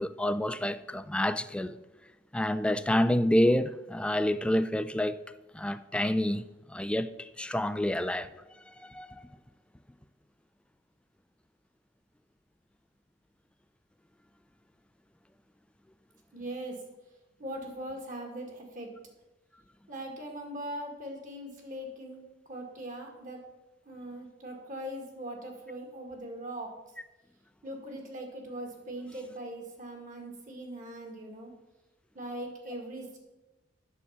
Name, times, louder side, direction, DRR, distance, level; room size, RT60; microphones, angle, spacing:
voice 1, 0.0-1.8 2.3-5.2 5.5-8.3 8.7-9.2, left 1 dB, 5° left, 0.3 m, -28 dB
voice 2, 16.3-16.8 17.4-19.0 19.9-22.2 22.5-23.4 23.9-26.8 27.6-31.5 32.1-33.2, right 1 dB, 45° right, 1.9 m, -40 dB
8.5 x 6.8 x 5.1 m
head